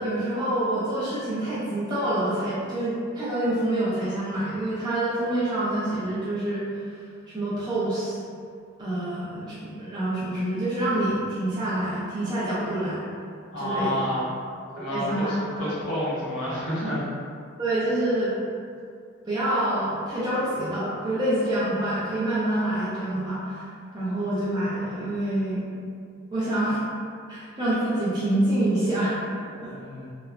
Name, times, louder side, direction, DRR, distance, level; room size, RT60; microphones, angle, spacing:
voice 1, 0.0-6.6 7.3-8.2 8.8-13.1 13.6-14.0 14.7-15.7 17.6-18.3 19.2-23.7 23.9-25.7 26.3-26.8 27.3-29.7, right 1 dB, 20° right, -11 dB, 0.4 m, -27 dB
voice 2, 13.5-14.3 14.8-17.0 29.7-30.1, left 1 dB, 70° left, -9 dB, 0.9 m, -29 dB
2.9 x 2.0 x 2.4 m, 2.2 s
head